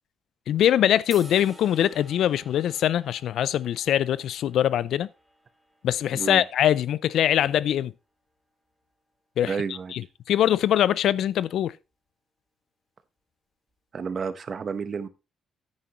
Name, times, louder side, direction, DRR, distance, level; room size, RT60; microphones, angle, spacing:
voice 1, 0.5-5.1 5.8-7.9 9.4-9.6 9.9-11.8, left 11 dB, 75° left, 0.4 m, -23 dB
sound 1, 1.1-7.3, equal, ahead, 4.0 m, -51 dB
voice 2, 6.1-6.4 9.4-9.9 13.9-15.1, right 5 dB, 45° right, 1.0 m, -31 dB
9.8 x 9.5 x 3.0 m
cardioid pair, 90°, 0 cm